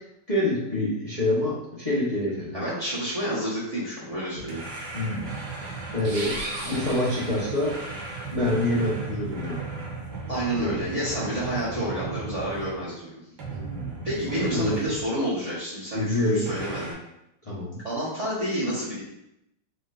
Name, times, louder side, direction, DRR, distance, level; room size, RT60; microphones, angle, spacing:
voice 1, 0.3-2.6 4.9-5.3 5.9-6.3 6.7-7.7 8.3-9.6 10.6-10.7 13.5-13.9 14.3-14.8 15.9-16.4 17.4-17.8, left 1 dB, 25° left, -10 dB, 1.1 m, -26 dB
voice 2, 2.5-4.6 10.3-13.1 14.0-17.0 17.8-19.0, equal, 25° right, -10 dB, 1.3 m, -29 dB
sound 1, 4.5-13.0 13.4-15.1 16.5-16.9, right 4 dB, 80° right, 1.7 m, -36 dB
sound 2, 6.0-8.0, right 2 dB, 55° right, 1.0 m, -37 dB
4.4 x 4.0 x 2.6 m, 0.83 s
omnidirectional pair, 1.8 m